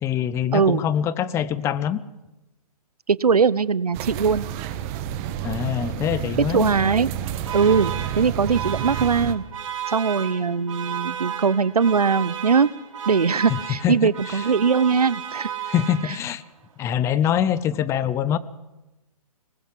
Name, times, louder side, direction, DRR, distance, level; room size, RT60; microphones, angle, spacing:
voice 1, 0.0-2.0 5.4-6.7 13.5-14.4 15.7-16.4 16.8-18.4, left 9 dB, 15° left, 17 dB, 0.7 m, -24 dB
voice 2, 0.5-0.8 3.1-4.5 6.4-7.1 7.5-9.4 9.9-12.7 13.1-15.5, right 5 dB, 85° right, 20 dB, 0.8 m, -21 dB
sound 1, 3.9-9.3, right 10 dB, 25° right, 1.3 m, -30 dB
Alarm, 7.0-16.4, right 9 dB, 55° right, 3.4 m, -34 dB
21.5 x 20.0 x 7.5 m, 0.98 s
hypercardioid pair, 140°, 19 cm